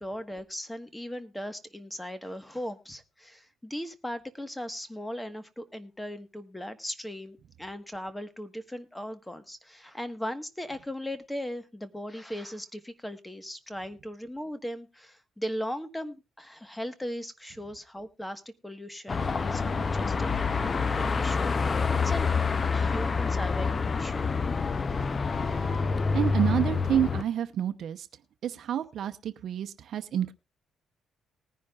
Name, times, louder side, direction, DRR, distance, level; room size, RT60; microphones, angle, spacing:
voice 1, 0.0-22.3 22.7-24.3, equal, 10° left, 10 dB, 1.4 m, -38 dB
Car passing by / Traffic noise roadway noise / Engine, 19.1-27.2, left 4 dB, 35° left, 0.7 m, -27 dB
voice 2, 26.1-28.1 28.4-30.3, right 10 dB, 65° right, 10 dB, 0.8 m, -29 dB
19.5 x 10.5 x 2.4 m, 0.27 s
cardioid pair, 90°, 0 cm